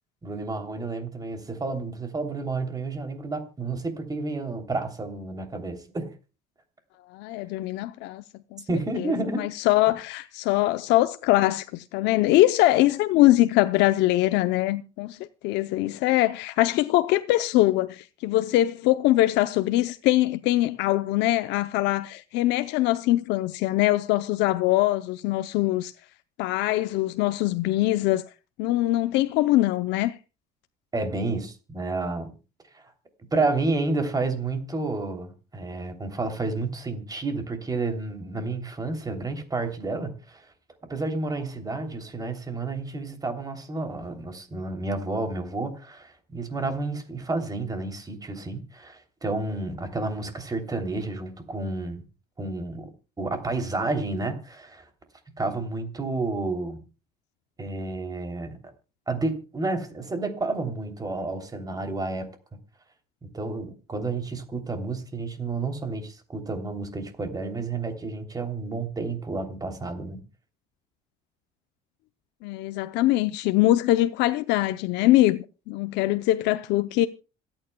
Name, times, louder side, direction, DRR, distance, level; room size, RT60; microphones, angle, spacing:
voice 1, 0.2-6.1 8.7-9.5 30.9-32.3 32.7-32.9 33.3-40.5 40.8-52.0 52.4-52.9 53.2-54.9 55.4-56.8 57.6-58.6 59.1-62.3 63.2-70.2, right 3 dB, 20° right, 3.0 m, -30 dB
voice 2, 7.1-8.2 8.5-8.6 9.3-25.9 26.4-28.3 28.6-30.1 72.4-77.1, left 16 dB, 80° left, 0.7 m, -22 dB
26.5 x 9.0 x 2.2 m
cardioid pair, 110°, 18 cm